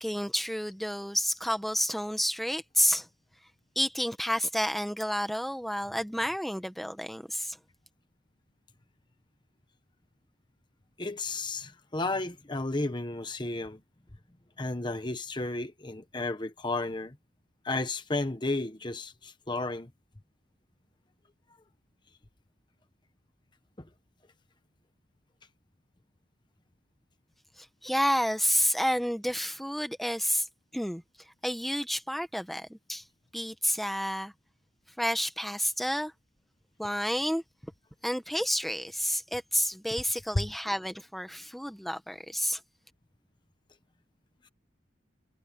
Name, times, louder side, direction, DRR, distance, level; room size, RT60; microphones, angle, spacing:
voice 1, 0.0-3.1 3.7-7.6 27.6-30.5 30.7-31.0 31.4-33.0 33.3-34.3 35.0-36.1 36.8-37.4 38.0-42.6, equal, ahead, 1.1 m, -30 dB
voice 2, 11.0-13.8 14.6-17.1 17.6-19.9 40.3-40.4, left 2 dB, 25° left, 1.0 m, -32 dB
head